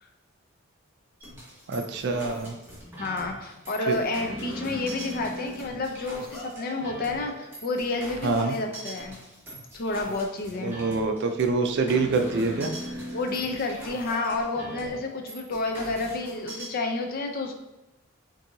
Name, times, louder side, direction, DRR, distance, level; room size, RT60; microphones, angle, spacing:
sound 1, 1.2-16.7, equal, 10° right, 1.3 m, -40 dB
voice 1, 1.7-2.6 3.9-4.0 8.2-8.5 10.6-12.7, right 3 dB, 55° right, 6 dB, 0.4 m, -25 dB
voice 2, 3.0-9.2 9.7-10.8 13.1-17.5, left 3 dB, 45° left, 4 dB, 0.5 m, -30 dB
5.4 x 2.7 x 2.6 m, 0.97 s
head